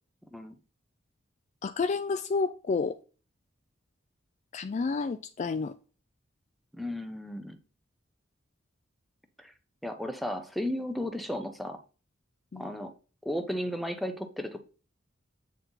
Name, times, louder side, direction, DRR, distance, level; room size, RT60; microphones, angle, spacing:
voice 1, 1.6-3.0 4.5-5.7 12.5-12.7, left 4 dB, 35° left, 0.3 m, -30 dB
voice 2, 6.7-7.6 9.4-9.5 9.8-11.8 12.6-12.9 13.2-14.6, equal, ahead, 0.8 m, -34 dB
8.3 x 4.3 x 4.0 m
head